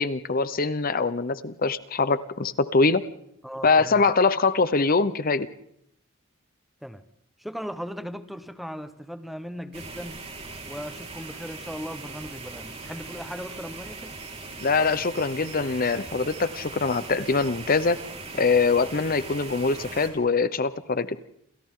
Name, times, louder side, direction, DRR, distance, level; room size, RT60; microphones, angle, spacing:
voice 1, 0.0-3.0 3.6-5.5 14.6-18.0 18.4-21.2, left 4 dB, 45° left, 0.9 m, -23 dB
voice 2, 3.4-4.0 6.8-7.0 7.4-10.2 10.7-14.1, equal, ahead, 1.1 m, -37 dB
sound 1, 9.7-20.1, right 3 dB, 30° right, 4.5 m, -40 dB
29.0 x 28.0 x 3.8 m
head